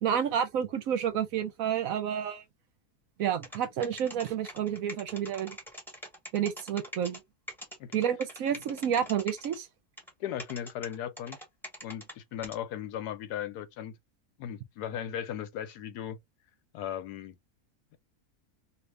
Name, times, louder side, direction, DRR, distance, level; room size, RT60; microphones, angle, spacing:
voice 1, 0.0-2.4 3.2-5.6 6.3-7.2 7.9-9.7, right 9 dB, 65° right, 1.0 m, -30 dB
sound 1, 3.3-7.2 7.5-9.6 10.0-10.1 10.4-12.1 12.4-12.6, equal, ahead, 0.9 m, -43 dB
voice 2, 10.2-11.4 11.8-13.9 14.4-16.2 16.7-17.4, left 10 dB, 85° left, 1.2 m, -37 dB
2.7 x 2.6 x 3.2 m
omnidirectional pair, 1.7 m